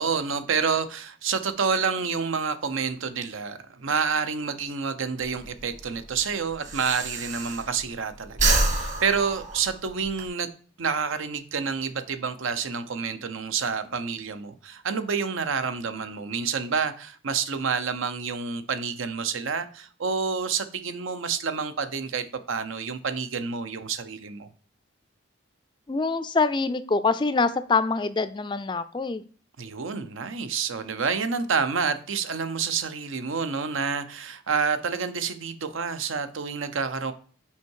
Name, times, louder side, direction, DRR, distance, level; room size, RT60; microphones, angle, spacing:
voice 1, 0.0-24.5 29.6-37.1, right 5 dB, 80° right, 0.7 m, -28 dB
Breathing, 5.2-8.0 8.3-10.3, right 2 dB, 40° right, 1.3 m, -27 dB
voice 2, 25.9-29.2, left 4 dB, 25° left, 0.3 m, -25 dB
5.7 x 4.6 x 4.6 m
head